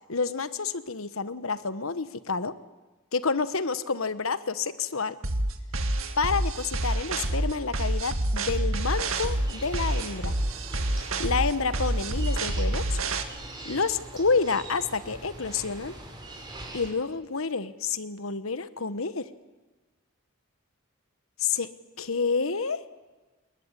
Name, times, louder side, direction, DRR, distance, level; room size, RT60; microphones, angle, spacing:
voice 1, 0.1-2.5 3.1-5.2 6.2-10.3 11.0-13.0 13.6-15.9 16.7-19.3 21.4-21.7 22.0-22.8, left 4 dB, 75° left, 14 dB, 1.3 m, -29 dB
sound 1, 5.2-13.2, right 1 dB, 70° right, 2.0 m, -28 dB
sound 2, 8.9-16.9, right 2 dB, 20° right, 5.2 m, -43 dB
27.0 x 21.0 x 9.8 m, 1.2 s
head